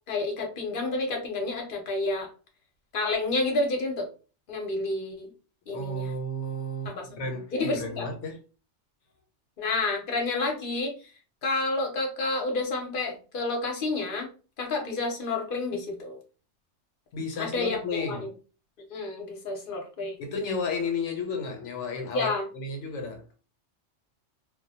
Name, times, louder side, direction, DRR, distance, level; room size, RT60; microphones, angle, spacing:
voice 1, 0.1-2.3 2.9-4.1 4.5-5.3 5.7-6.1 6.8-8.1 9.6-10.9 11.4-14.3 14.6-16.2 17.4-18.3 18.9-20.2 22.1-22.5, left 2 dB, 50° left, 0.8 m, -29 dB
voice 2, 5.7-8.4 17.1-18.3 20.2-23.2, left 3 dB, 80° left, 0.9 m, -33 dB
2.2 x 2.1 x 2.7 m
omnidirectional pair, 1.2 m